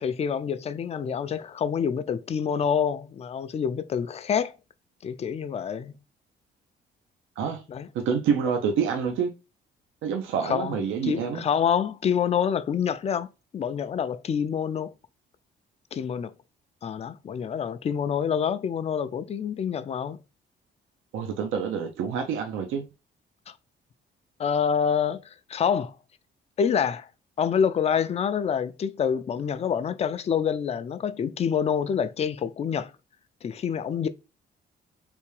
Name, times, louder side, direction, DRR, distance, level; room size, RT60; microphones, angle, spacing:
voice 1, 0.0-4.5 5.0-5.9 7.7-7.9 10.4-14.9 15.9-16.3 16.8-20.2 24.4-25.2 25.5-25.9 26.6-27.1 27.4-32.9 33.4-34.1, left 7 dB, 30° left, 0.4 m, -27 dB
voice 2, 7.9-9.3 10.0-11.4 21.1-22.9, right 6 dB, 85° right, 0.6 m, -27 dB
3.4 x 2.7 x 3.2 m
cardioid pair, 90°, 20 cm